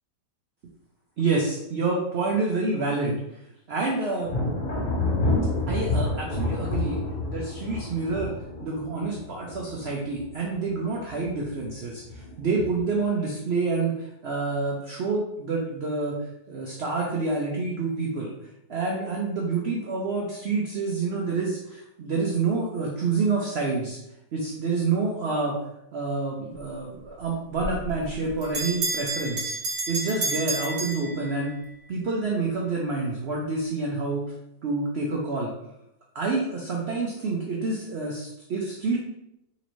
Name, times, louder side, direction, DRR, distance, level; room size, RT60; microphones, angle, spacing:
voice 1, 1.2-3.2 3.7-4.4 5.7-7.0 7.3-8.3 8.6-16.2 16.5-18.3 18.7-24.0 24.3-25.6 25.9-29.5 29.9-31.5 31.9-34.2 34.6-35.5 36.1-39.0, right 3 dB, 80° right, -2 dB, 0.5 m, -28 dB
Thunder, 4.2-10.7 11.1-11.6 12.1-12.9, left 2 dB, 80° left, 0.4 m, -29 dB
Bell, 27.6-31.7, right 3 dB, 60° right, 1.6 m, -30 dB
4.1 x 2.6 x 3.0 m, 0.84 s
omnidirectional pair, 1.8 m